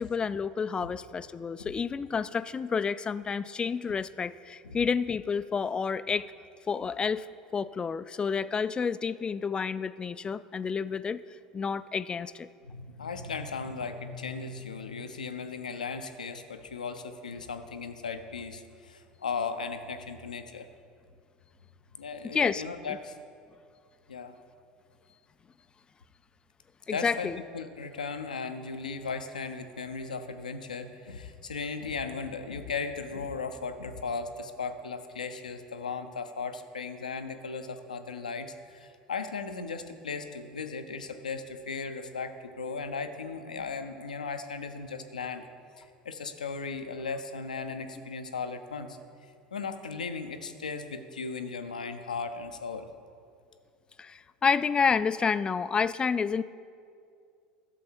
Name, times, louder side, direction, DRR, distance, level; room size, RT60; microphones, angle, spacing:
voice 1, 0.0-6.3 6.7-7.3 7.5-11.2 11.5-12.5 22.2-22.6 26.9-27.4 48.0-48.1 54.0-56.4, left 6 dB, 20° left, 15 dB, 0.3 m, -29 dB
voice 2, 12.6-20.7 22.0-23.2 24.1-24.3 26.9-27.3 27.5-45.5 45.8-49.0 49.5-52.9, left 4 dB, 80° left, 9 dB, 0.6 m, -37 dB
12.5 x 7.1 x 4.5 m, 2.3 s
figure-of-eight pair, 75°, 4 cm